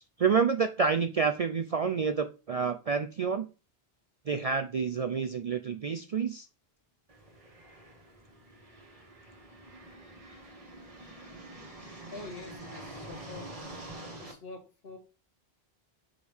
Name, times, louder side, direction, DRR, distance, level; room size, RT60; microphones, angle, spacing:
voice 1, 0.2-3.5 4.3-6.5, right 5 dB, 55° right, 0.4 m, -28 dB
sound 1, 7.1-14.3, right 1 dB, 35° right, 1.5 m, -46 dB
voice 2, 12.1-13.6 14.2-15.0, left 3 dB, 70° left, 1.5 m, -46 dB
6.1 x 5.0 x 3.5 m
omnidirectional pair, 1.1 m